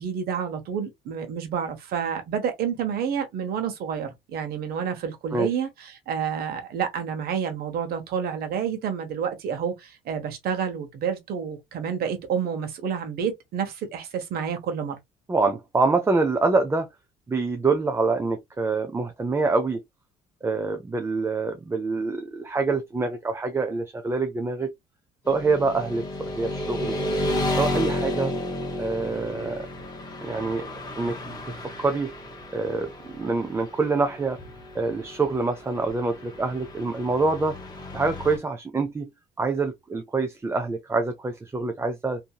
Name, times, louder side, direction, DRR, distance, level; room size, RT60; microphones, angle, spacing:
voice 1, 0.0-15.0, right 7 dB, 65° right, 0.9 m, -29 dB
voice 2, 15.3-16.9 17.3-19.8 20.4-24.7 25.3-27.0 27.6-28.3 28.8-29.7 30.2-30.7 31.0-31.4 31.8-32.1 32.5-34.4 34.7-37.6 37.9-42.2, right 3 dB, 15° right, 0.4 m, -26 dB
Motorcycle / Traffic noise roadway noise, 25.3-38.4, left 1 dB, 25° left, 1.1 m, -32 dB
2.7 x 2.7 x 2.2 m
cardioid pair, 110°, 17 cm